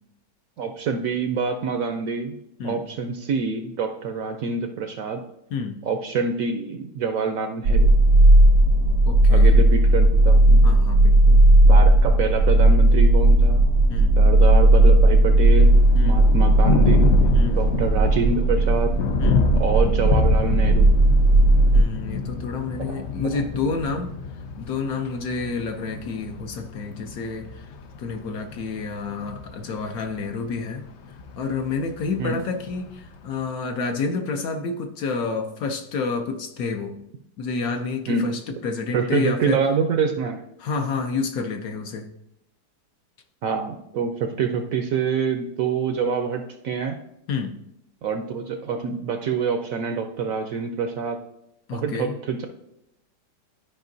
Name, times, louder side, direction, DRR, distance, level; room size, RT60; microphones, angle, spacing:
voice 1, 0.6-2.3 2.6-5.2 5.8-7.9 9.3-10.6 11.6-13.6 14.2-15.8 16.0-17.2 17.5-18.9 19.5-21.0 22.8-23.0 23.3-23.4 32.2-32.3 38.1-38.3 38.9-40.4 43.4-47.0 48.0-51.2 51.7-52.5, right 5 dB, 65° right, 6 dB, 0.8 m, -26 dB
sound 1, 7.6-21.8, right 1 dB, 85° right, 1.5 m, -15 dB
voice 2, 9.1-9.6 10.6-11.4 13.9-14.2 15.9-16.2 17.3-17.6 19.2-19.5 21.7-24.1 24.6-27.7 28.0-30.9 31.4-37.0 37.4-39.6 40.6-42.1 47.3-47.6 51.7-52.1, left 4 dB, 65° left, 5 dB, 1.0 m, -29 dB
Thunder, 15.4-33.4, left 5 dB, 85° left, 0.6 m, -29 dB
12.5 x 5.0 x 2.6 m, 0.81 s
omnidirectional pair, 1.9 m